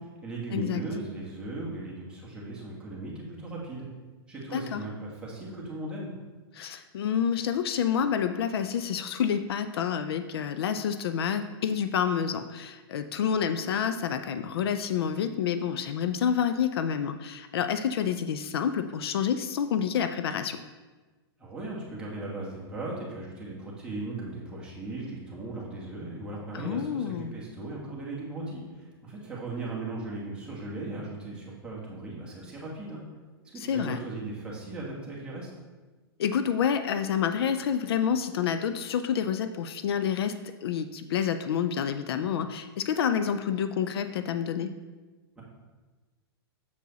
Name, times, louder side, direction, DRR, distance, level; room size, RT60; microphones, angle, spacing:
voice 1, 0.0-3.8 4.3-6.1 21.4-33.0 33.4-35.5 45.4-45.5, right 2 dB, 5° right, -5 dB, 1.4 m, -37 dB
voice 2, 6.6-20.6 26.5-27.4 33.7-34.0 36.2-40.3 40.6-44.7, left 8 dB, 70° left, 10 dB, 0.4 m, -28 dB
6.9 x 4.7 x 4.0 m, 1.3 s
hypercardioid pair, 150°, 13 cm